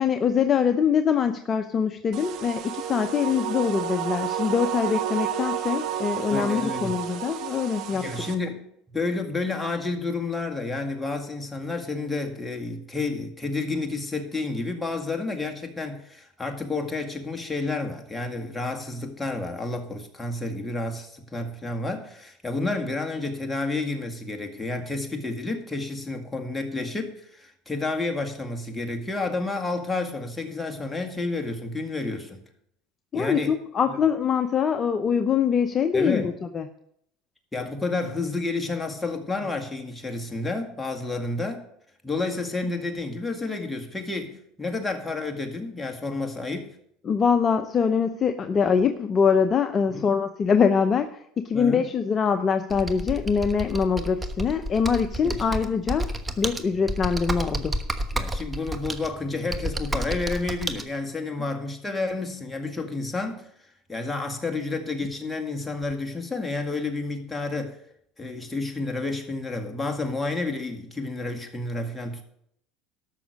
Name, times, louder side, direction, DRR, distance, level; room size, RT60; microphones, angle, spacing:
voice 1, 0.0-8.1 33.1-36.7 47.0-56.1 56.4-57.8, left 6 dB, 35° left, 0.7 m, -23 dB
sound 1, 2.1-8.3, right 9 dB, 60° right, 1.2 m, -31 dB
voice 2, 6.3-6.9 7.9-32.4 33.1-33.5 35.9-36.3 37.5-41.6 42.0-46.8 49.9-50.0 51.5-51.9 55.2-55.4 58.1-63.5 63.9-67.8 68.2-72.2, left 3 dB, 10° left, 2.0 m, -30 dB
Computer keyboard, 52.7-60.8, right 1 dB, 15° right, 1.1 m, -31 dB
13.0 x 6.2 x 6.5 m
supercardioid pair, 95°, 0 cm